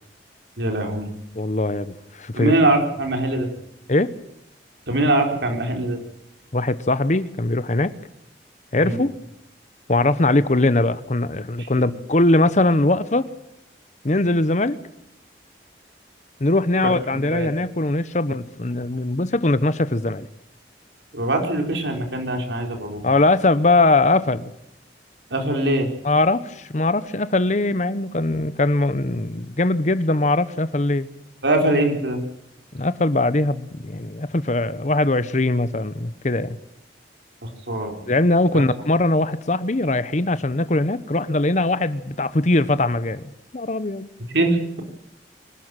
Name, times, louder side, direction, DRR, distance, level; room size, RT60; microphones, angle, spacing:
voice 1, 0.6-1.1 2.4-3.5 4.9-6.0 8.8-9.0 11.6-11.7 17.3-17.5 21.1-23.1 25.3-25.9 31.4-32.2 37.7-37.9 44.3-44.8, right 1 dB, 85° right, 3 dB, 4.3 m, -22 dB
voice 2, 1.3-2.6 3.9-4.1 6.5-7.9 8.7-9.1 9.9-13.3 14.0-14.8 16.4-20.3 23.0-24.5 26.0-31.1 32.7-36.6 38.1-44.1, left 2 dB, 40° left, 15 dB, 1.0 m, -21 dB
24.5 x 13.0 x 9.1 m, 0.79 s
head